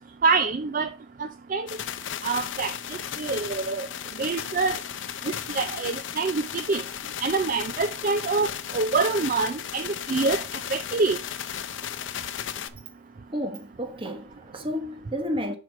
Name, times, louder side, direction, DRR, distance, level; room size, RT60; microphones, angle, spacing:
voice 1, 0.2-0.9 1.2-1.7 2.2-3.9 4.2-4.8 5.2-6.8 7.2-10.4 10.7-11.2, right 4 dB, 45° right, 0.4 m, -26 dB
sound 1, 1.7-12.7, left 9 dB, 80° left, 0.6 m, -35 dB
voice 2, 13.3-15.6, equal, 30° right, 1.1 m, -31 dB
5.9 x 4.5 x 5.9 m
head